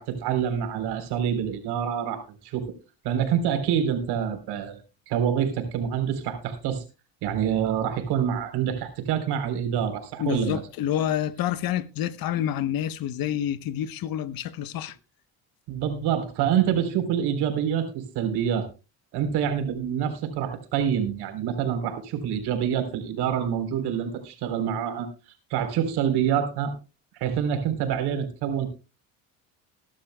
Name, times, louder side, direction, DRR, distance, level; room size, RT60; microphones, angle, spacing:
voice 1, 0.0-2.7 3.0-4.8 5.1-6.8 7.2-10.6 15.7-18.7 19.1-25.1 25.5-26.7 27.1-28.7, right 8 dB, 80° right, 3.9 m, -26 dB
voice 2, 10.2-15.0, left 11 dB, 65° left, 1.1 m, -28 dB
21.0 x 11.5 x 2.2 m
supercardioid pair, 85°, 38 cm